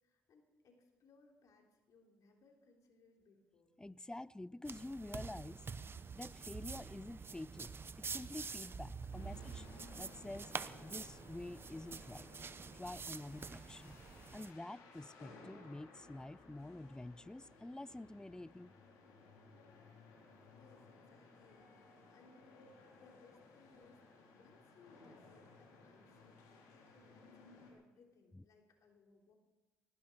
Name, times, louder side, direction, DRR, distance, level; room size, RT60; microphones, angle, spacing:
voice 1, 0.0-3.7 20.2-29.3, left 3 dB, 65° left, 3.5 m, -67 dB
voice 2, 3.8-5.7 6.1-9.7 9.9-10.5 10.8-12.3 12.7-14.0 14.3-18.7 28.3-28.4, left 2 dB, 10° left, 0.5 m, -48 dB
sound 1, 4.6-14.5, right 5 dB, 40° right, 0.9 m, -47 dB
sound 2, 9.1-27.7, left 3 dB, 80° left, 3.8 m, -60 dB
19.0 x 15.5 x 4.5 m
supercardioid pair, 55°, 6 cm